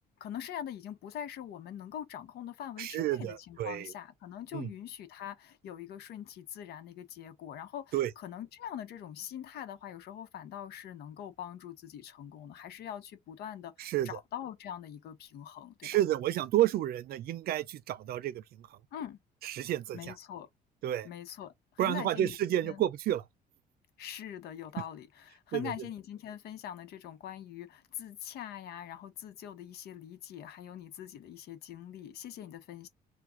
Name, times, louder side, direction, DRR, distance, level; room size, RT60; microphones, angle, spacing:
voice 1, 0.2-16.0 18.9-19.2 19.9-20.5 21.0-22.3 22.6-22.8 24.0-32.9, left 10 dB, 70° left, 1.0 m, -43 dB
voice 2, 2.8-3.9 4.5-4.7 7.9-8.1 13.8-14.1 15.8-18.8 19.4-20.2 20.8-21.1 21.8-23.2 25.5-25.7, right 13 dB, 65° right, 0.5 m, -30 dB
4.7 x 2.3 x 3.7 m
cardioid pair, 110°, 17 cm